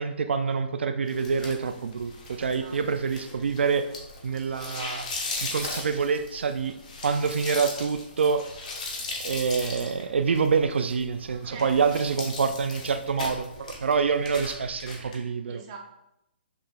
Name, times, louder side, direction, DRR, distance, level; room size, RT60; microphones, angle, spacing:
voice 1, 0.0-3.9 4.2-5.1 5.4-6.7 7.0-8.4 9.2-15.6, right 5 dB, 80° right, 9 dB, 0.3 m, -26 dB
sound 1, 1.1-15.2, left 3 dB, 40° left, 0.8 m, -38 dB
voice 2, 2.5-3.5 11.4-11.9 15.5-15.8, right 3 dB, 25° right, 0 dB, 0.6 m, -44 dB
5.6 x 3.3 x 2.3 m, 0.84 s
hypercardioid pair, 170°, 6 cm